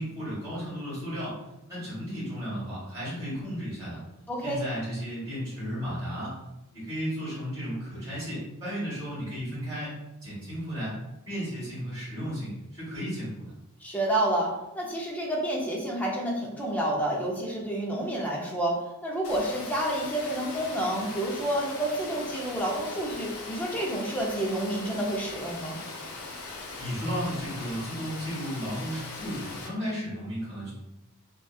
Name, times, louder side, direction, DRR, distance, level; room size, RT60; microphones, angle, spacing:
voice 1, 0.0-1.3 1.7-4.0 4.4-6.3 6.7-9.9 10.2-11.0 11.3-13.4 26.8-30.7, equal, 15° right, -11 dB, 1.3 m, -34 dB
voice 2, 4.3-4.6 13.8-25.8, right 1 dB, 5° left, -2 dB, 0.4 m, -29 dB
Water, 19.2-29.7, left 3 dB, 65° left, 0.5 m, -40 dB
2.6 x 2.2 x 2.3 m, 0.92 s
head